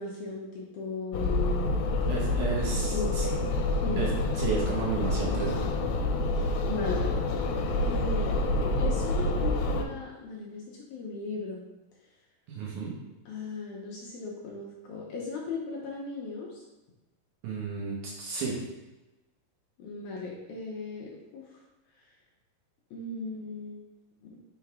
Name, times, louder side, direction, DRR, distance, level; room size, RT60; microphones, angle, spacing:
voice 1, 0.0-1.7 2.9-3.5 3.8-4.1 6.7-7.2 7.8-11.6 13.3-16.6 19.8-21.6 22.0-22.1 22.9-23.8 24.2-24.4, left 4 dB, 75° left, -3 dB, 1.9 m, -37 dB
sound 1, 1.1-9.8, left 2 dB, 90° left, 2.4 m, -28 dB
voice 2, 2.1-3.3 4.0-5.7 12.5-13.0 17.4-18.7, right 5 dB, 70° right, -3 dB, 2.1 m, -33 dB
5.7 x 3.8 x 4.7 m, 1.1 s
omnidirectional pair, 4.1 m